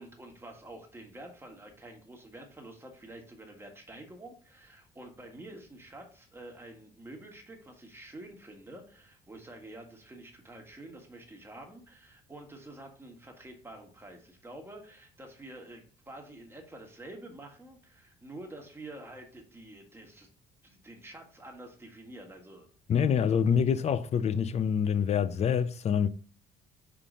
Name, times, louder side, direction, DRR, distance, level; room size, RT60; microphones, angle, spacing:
voice 1, 0.0-20.3 20.6-22.7 23.2-23.4, right 1 dB, 15° right, 1.6 m, -48 dB
voice 2, 22.9-26.1, left 7 dB, 40° left, 0.6 m, -26 dB
5.7 x 4.9 x 3.8 m
cardioid pair, 110°, 17 cm